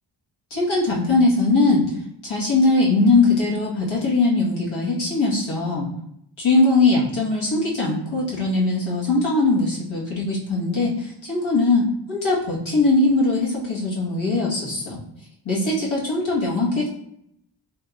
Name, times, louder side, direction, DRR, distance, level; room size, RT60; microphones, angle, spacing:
voice 1, 0.5-1.8 2.2-5.9 6.4-15.0 15.4-16.9, left 3 dB, 70° left, -5 dB, 1.4 m, -20 dB
3.3 x 3.2 x 2.4 m, 0.75 s
cardioid pair, 70°, 48 cm